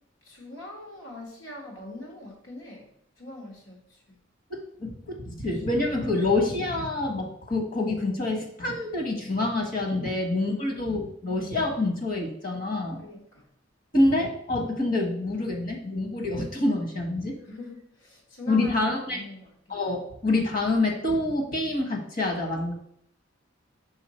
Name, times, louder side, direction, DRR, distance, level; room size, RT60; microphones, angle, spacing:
voice 1, 0.2-2.8 3.2-3.8 4.1-4.2 10.0-10.1 10.5-10.8 13.0-13.4 17.5-19.5, left 2 dB, 75° left, -1 dB, 1.7 m, -42 dB
voice 2, 4.5-13.0 13.9-17.3 18.5-19.2 19.7-22.7, left 2 dB, 45° left, 2 dB, 1.4 m, -27 dB
5.7 x 3.9 x 4.3 m, 0.69 s
head